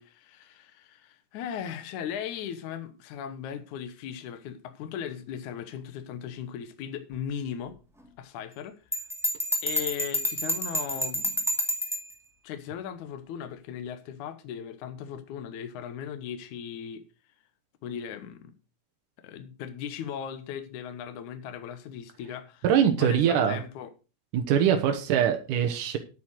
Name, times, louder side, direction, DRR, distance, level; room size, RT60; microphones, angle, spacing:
voice 1, 0.0-7.8 8.2-8.7 9.6-11.4 12.4-17.0 17.8-18.5 19.2-22.6 23.0-23.9, left 8 dB, 70° left, 2.4 m, -38 dB
Bell, 8.9-12.1, equal, ahead, 1.6 m, -29 dB
voice 2, 22.6-23.6 24.3-26.0, right 8 dB, 75° right, 2.7 m, -23 dB
9.3 x 8.5 x 6.5 m
omnidirectional pair, 3.7 m